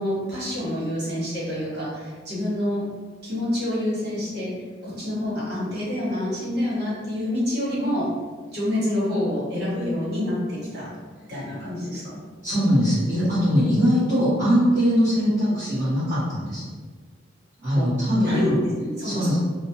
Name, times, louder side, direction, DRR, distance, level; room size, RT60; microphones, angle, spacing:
voice 1, 0.0-2.8 3.2-4.5 4.8-8.1 8.5-10.9 11.3-12.0 17.7-17.9 18.1-19.4, left 1 dB, 55° right, -8 dB, 1.2 m, -27 dB
voice 2, 12.4-16.6 17.6-18.6 19.0-19.4, equal, 10° right, -19 dB, 1.2 m, -21 dB
3.0 x 2.0 x 2.7 m, 1.4 s
head